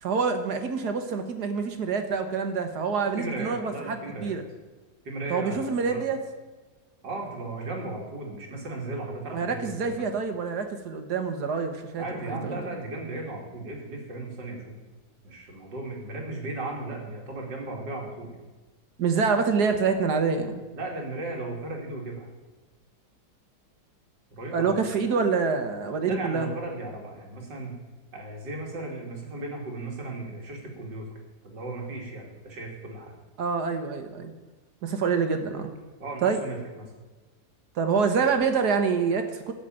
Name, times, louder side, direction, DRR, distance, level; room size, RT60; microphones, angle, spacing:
voice 1, 0.0-4.4 5.3-6.2 9.3-12.6 19.0-20.6 24.5-26.5 33.4-34.3 34.8-35.7 36.2-36.4 37.8-39.5, right 5 dB, 65° right, 7 dB, 1.8 m, -26 dB
voice 2, 3.2-4.4 5.0-6.0 7.0-10.1 12.0-14.8 15.2-18.3 20.7-22.3 24.3-24.8 26.0-27.7 28.1-31.1 31.4-33.1 36.0-36.9, right 2 dB, 85° right, -1 dB, 3.3 m, -36 dB
13.0 x 7.1 x 9.0 m, 1.2 s
omnidirectional pair, 1.8 m